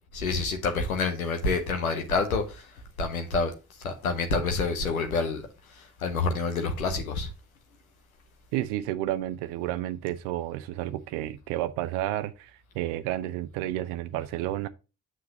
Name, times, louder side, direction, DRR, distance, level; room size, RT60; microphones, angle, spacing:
voice 1, 0.1-2.7 3.0-3.5 3.8-5.4 5.7-7.3, left 3 dB, 90° left, 0.8 m, -28 dB
voice 2, 8.5-14.7, right 14 dB, 70° right, 0.7 m, -31 dB
7.5 x 6.0 x 2.7 m
figure-of-eight pair, 40°, 41 cm